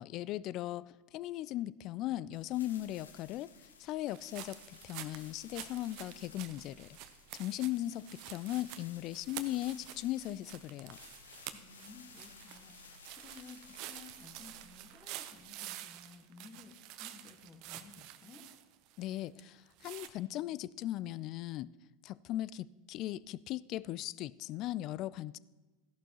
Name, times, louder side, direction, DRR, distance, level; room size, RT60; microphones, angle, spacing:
voice 1, 0.0-3.5 3.8-6.9 7.3-11.0 19.0-21.7 22.0-25.4, left 14 dB, 50° left, 0.3 m, -38 dB
sound 1, 2.3-15.4, left 5 dB, 85° left, 1.0 m, -57 dB
sound 2, 4.1-19.4 19.8-20.1, right 13 dB, 55° right, 0.7 m, -48 dB
voice 2, 11.5-18.4, left 4 dB, 30° left, 1.7 m, -55 dB
14.0 x 11.5 x 3.0 m
hypercardioid pair, 85°, 0 cm